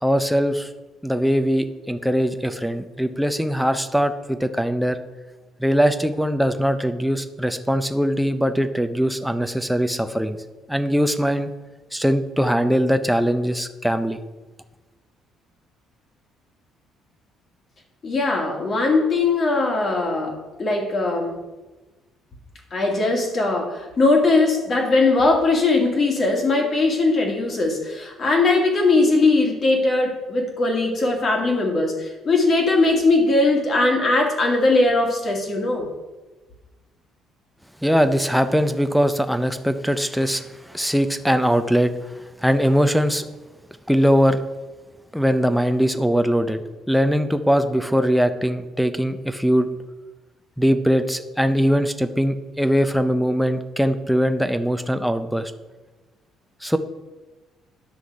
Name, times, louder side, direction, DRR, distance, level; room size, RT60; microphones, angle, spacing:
voice 1, 0.0-0.7 1.0-5.0 5.6-10.4 10.7-11.5 11.9-14.2 37.8-43.2 43.9-44.4 45.1-46.6 46.9-49.7 50.6-55.5 56.6-56.8, equal, ahead, 8 dB, 0.6 m, -21 dB
voice 2, 18.0-21.4 22.7-35.9, left 3 dB, 35° left, 1 dB, 2.0 m, -20 dB
10.0 x 6.2 x 4.7 m, 1.2 s
cardioid pair, 120°, 0 cm